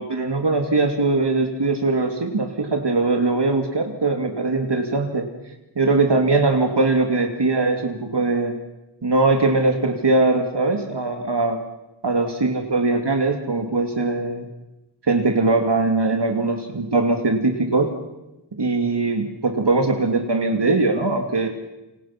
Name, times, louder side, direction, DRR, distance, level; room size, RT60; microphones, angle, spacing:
voice 1, 0.0-5.3 5.8-8.6 9.0-11.6 12.0-14.5 15.1-17.9 18.6-21.5, right 3 dB, 60° right, 4 dB, 2.5 m, -21 dB
27.5 x 25.0 x 6.0 m, 0.98 s
wide cardioid pair, 50°, 46 cm